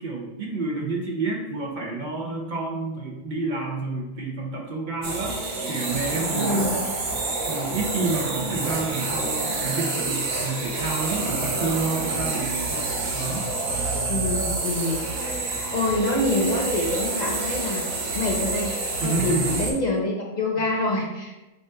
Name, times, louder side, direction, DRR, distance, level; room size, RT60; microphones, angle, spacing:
voice 1, 0.0-6.7 7.2-13.4 19.0-19.7, right 3 dB, 55° right, -1 dB, 0.8 m, -29 dB
sound 1, 5.0-19.7, right 3 dB, 75° right, 1.0 m, -28 dB
voice 2, 6.3-6.8 14.1-15.3 15.7-17.8 18.1-18.7 19.0-21.5, left 2 dB, 45° left, -1 dB, 0.8 m, -26 dB
5.1 x 2.5 x 3.6 m, 1.0 s
omnidirectional pair, 1.1 m